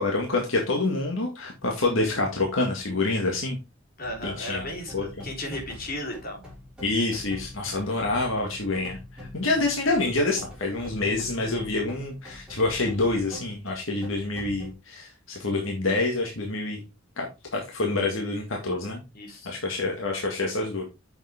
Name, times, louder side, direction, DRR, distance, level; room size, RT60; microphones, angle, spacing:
voice 1, 0.0-3.6 4.2-4.6 4.9-5.2 6.8-16.8 17.2-17.3 17.5-19.0 19.5-20.8, left 2 dB, 75° left, 1 dB, 2.0 m, -27 dB
voice 2, 4.0-6.4 19.1-19.5, left 1 dB, 50° left, 0 dB, 3.8 m, -35 dB
sound 1, 4.0-14.7, left 1 dB, 5° right, 4.2 m, -44 dB
8.4 x 7.1 x 3.6 m, 0.26 s
head